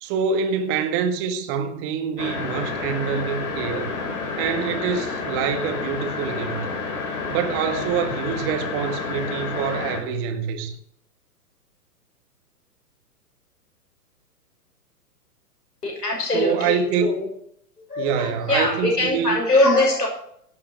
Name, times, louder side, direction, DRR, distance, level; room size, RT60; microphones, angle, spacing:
voice 1, 0.0-3.9 4.4-6.7 7.3-10.7 16.3-17.1 18.0-19.4, right 6 dB, 30° right, 1.8 m, -25 dB
sound 1, 2.2-10.0, left 4 dB, 55° left, 5.2 m, -29 dB
voice 2, 15.8-17.3 17.9-20.1, left 2 dB, 80° left, 6.5 m, -22 dB
17.5 x 8.5 x 4.5 m
figure-of-eight pair, 115°, 48 cm